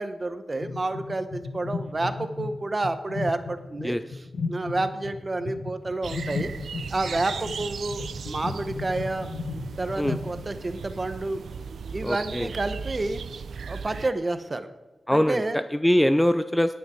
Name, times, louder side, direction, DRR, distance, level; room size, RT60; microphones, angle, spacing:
voice 1, 0.0-4.2 4.5-6.5 6.9-9.3 9.8-11.4 11.9-13.2 13.7-14.7 15.1-15.6, right 2 dB, 25° right, 9 dB, 1.0 m, -29 dB
sound 1, 0.6-10.7, left 4 dB, 80° left, 1.0 m, -35 dB
sound 2, 6.0-14.1, right 6 dB, 85° right, 0.4 m, -37 dB
voice 2, 12.0-12.5 15.1-16.7, equal, 5° left, 10 dB, 0.4 m, -23 dB
18.5 x 9.6 x 4.4 m, 1.2 s
wide cardioid pair, 150°, 0 cm